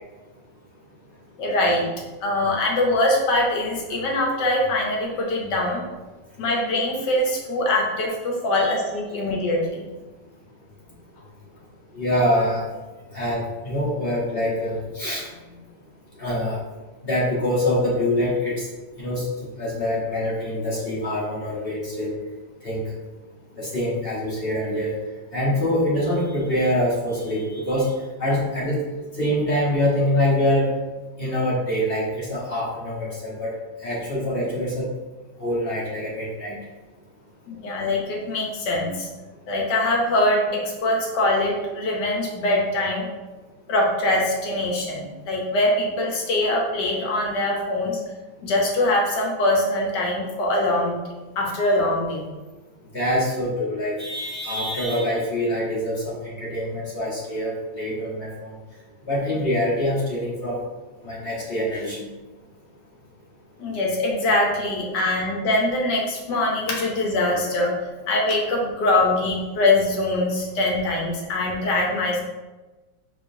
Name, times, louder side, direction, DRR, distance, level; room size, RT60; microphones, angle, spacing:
voice 1, 1.4-1.9 2.2-5.9 6.4-9.9 37.5-39.1 39.5-43.1 43.7-48.0 48.4-51.0 51.4-52.2 63.6-67.7 68.1-72.2, left 1 dB, 70° left, -1 dB, 1.4 m, -23 dB
voice 2, 11.9-12.6 13.1-15.3 16.2-16.6 17.0-18.7 19.0-19.3 19.6-22.1 22.6-22.9 23.6-24.9 25.3-27.9 28.2-28.8 29.1-30.7 31.2-33.5 33.8-34.9 35.4-36.6 52.9-58.5 59.1-60.6 61.0-62.1 64.9-65.1, left 1 dB, 35° left, -7 dB, 1.1 m, -25 dB
4.9 x 3.7 x 2.6 m, 1.2 s
omnidirectional pair, 2.1 m